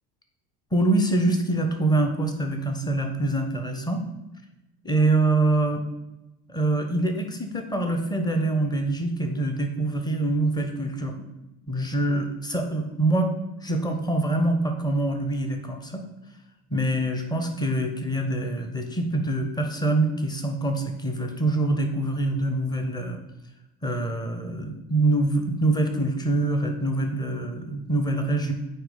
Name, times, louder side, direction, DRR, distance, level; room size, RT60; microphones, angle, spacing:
voice 1, 0.7-4.1 4.8-5.8 6.5-11.3 11.7-16.1 16.7-23.2 23.8-28.5, right 2 dB, 10° left, 5 dB, 0.9 m, -25 dB
8.8 x 2.9 x 3.8 m, 0.95 s
hypercardioid pair, 75°, 45 cm